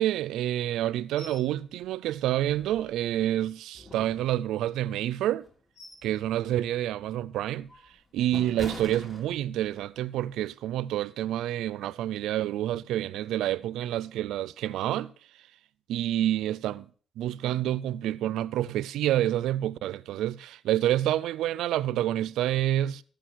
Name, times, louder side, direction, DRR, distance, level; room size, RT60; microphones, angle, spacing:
voice 1, 0.0-5.4 6.0-7.7 8.1-15.1 15.9-16.9 17.2-23.0, right 13 dB, 85° right, 0.4 m, -28 dB
sound 1, 1.2-1.5 1.8-1.9 2.4-3.2 3.7-4.8 5.3-6.2 6.5-6.8 7.3-9.8 10.2-10.4, left 2 dB, 25° left, 3.1 m, -45 dB
14.0 x 6.5 x 6.3 m
cardioid pair, 90°, 0 cm